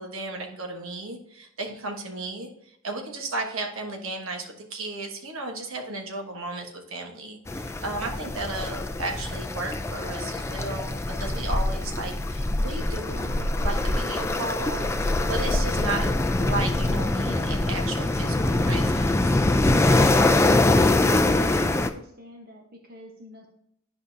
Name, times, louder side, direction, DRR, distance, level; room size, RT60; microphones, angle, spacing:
voice 1, 0.0-16.1 16.4-19.4, right 2 dB, 70° right, 2 dB, 1.3 m, -34 dB
sound 1, 7.5-21.9, left 2 dB, 15° left, 0.3 m, -23 dB
voice 2, 21.2-23.5, equal, 45° right, 2 dB, 1.1 m, -45 dB
10.5 x 5.1 x 2.7 m, 0.74 s
head